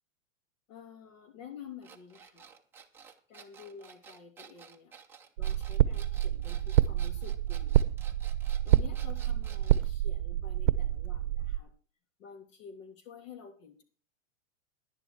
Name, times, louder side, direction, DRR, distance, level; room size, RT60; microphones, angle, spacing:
voice 1, 0.7-2.5 3.3-4.9 5.4-7.8 8.6-11.7 12.2-13.8, left 6 dB, 75° left, 5 dB, 3.0 m, -50 dB
sound 1, 1.8-9.9, right 6 dB, 5° right, 0.5 m, -53 dB
sound 2, 5.4-11.6, right 12 dB, 60° right, 0.7 m, -28 dB
10.5 x 10.5 x 4.6 m, 0.38 s
supercardioid pair, 150°, 39 cm